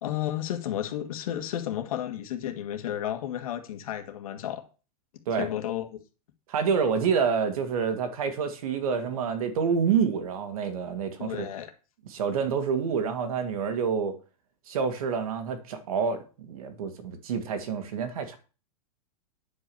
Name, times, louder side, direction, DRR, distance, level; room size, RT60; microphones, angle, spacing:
voice 1, 0.0-4.6 5.4-5.9 11.2-11.7, left 11 dB, 60° left, 2.1 m, -32 dB
voice 2, 6.5-11.5 12.1-14.1 14.7-18.4, right 6 dB, 60° right, 2.2 m, -28 dB
9.9 x 5.4 x 7.0 m
supercardioid pair, 175°, 20 cm